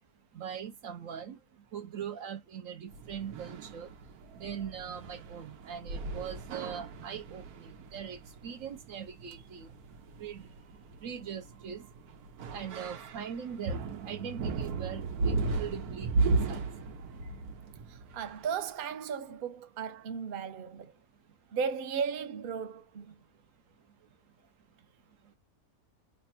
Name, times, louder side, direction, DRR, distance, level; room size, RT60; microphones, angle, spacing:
voice 1, 0.3-1.4 1.7-3.9 4.4-9.7 10.2-10.5 11.0-11.8 12.5-16.7, right 8 dB, 70° right, 0.9 m, -41 dB
sound 1, 2.9-18.5, right 3 dB, 85° right, 1.3 m, -36 dB
voice 2, 17.9-20.9 21.5-23.2, right 6 dB, 50° right, 0.7 m, -36 dB
3.3 x 2.1 x 4.2 m
omnidirectional pair, 1.5 m